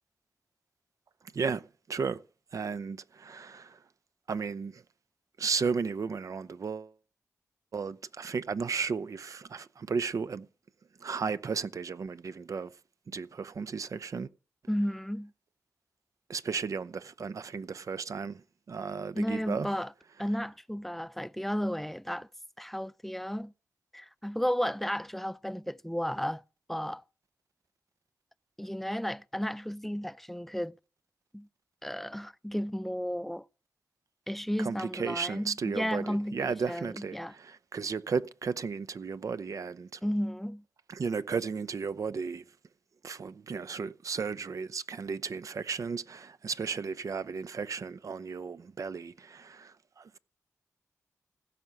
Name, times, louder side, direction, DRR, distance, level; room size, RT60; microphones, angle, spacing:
voice 1, 1.3-2.2 2.5-3.8 4.3-4.8 5.4-6.9 7.7-10.5 11.0-12.7 13.1-14.3 16.3-19.7 34.6-40.0 40.9-42.4 43.0-50.2, right 5 dB, 70° right, 0.6 m, -34 dB
voice 2, 14.7-15.3 19.1-19.9 20.2-22.3 22.6-23.5 23.9-26.4 26.7-27.0 28.6-30.7 31.3-31.5 31.8-33.5 34.3-37.3 40.0-40.6, equal, 5° left, 0.5 m, -33 dB
16.0 x 5.7 x 7.6 m
cardioid pair, 50°, 6 cm